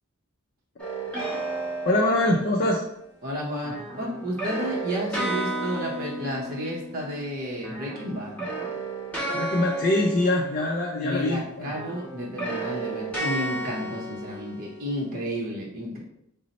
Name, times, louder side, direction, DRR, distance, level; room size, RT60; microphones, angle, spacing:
sound 1, 0.8-2.7 3.6-7.3 7.6-11.2 11.6-15.1, right 2 dB, 5° left, 1.2 m, -33 dB
voice 1, 1.9-2.8 9.3-11.7, left 1 dB, 45° left, 0 dB, 0.4 m, -23 dB
voice 2, 3.2-8.4 11.0-16.0, equal, 45° right, -4 dB, 0.7 m, -32 dB
3.9 x 2.0 x 4.0 m, 0.78 s
head